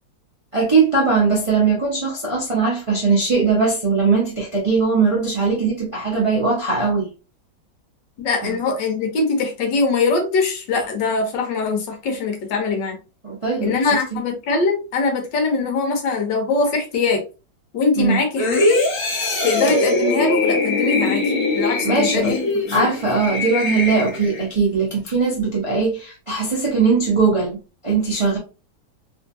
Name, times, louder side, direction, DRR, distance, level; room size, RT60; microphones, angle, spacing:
voice 1, 0.5-7.1 8.4-8.6 13.2-14.2 18.0-18.2 21.8-22.3 22.7-27.6 27.8-28.4, right 4 dB, 35° right, 0.5 m, -20 dB
voice 2, 8.2-13.0 13.6-17.2 17.7-18.8 19.4-21.3 21.6-22.9, left 4 dB, 75° left, 1.5 m, -22 dB
sound 1, 18.4-24.5 24.9-25.1, left 2 dB, 50° left, 1.3 m, -21 dB
3.5 x 2.6 x 2.6 m
omnidirectional pair, 2.0 m